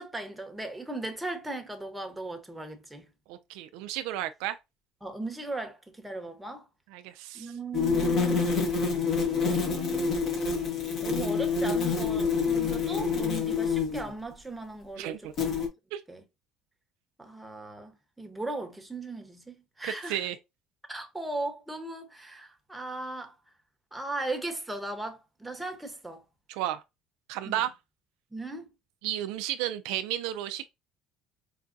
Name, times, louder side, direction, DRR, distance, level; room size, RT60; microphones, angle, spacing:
voice 1, 0.0-3.1 5.0-6.7 7.3-8.5 9.3-10.3 11.0-15.3 15.6-15.7 16.1-16.2 17.2-20.2 20.9-23.3 23.9-26.2 27.4-27.6 28.3-28.6, right 2 dB, 10° right, 1.0 m, -38 dB
voice 2, 3.3-4.6 6.9-7.5 15.0-15.3 15.9-16.0 19.8-20.4 26.5-26.8 27.3-27.7 29.0-30.7, right 13 dB, 80° right, 0.3 m, -33 dB
sound 1, 7.7-14.1 15.4-15.7, left 5 dB, 55° left, 1.3 m, -27 dB
4.7 x 2.2 x 2.6 m
supercardioid pair, 90°, 0 cm